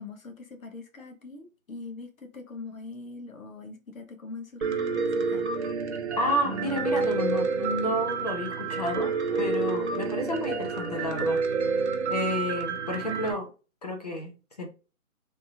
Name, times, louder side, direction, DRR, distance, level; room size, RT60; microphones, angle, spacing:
voice 1, 0.0-5.5, left 3 dB, 70° left, 1.1 m, -42 dB
Piano, 4.6-13.3, right 5 dB, 55° right, 0.7 m, -29 dB
voice 2, 6.2-11.4 12.1-13.5 13.8-14.7, left 1 dB, 30° left, 0.6 m, -30 dB
sound 1, 6.4-11.7, right 3 dB, 75° right, 1.1 m, -41 dB
3.4 x 2.6 x 2.8 m
figure-of-eight pair, 155°, 42 cm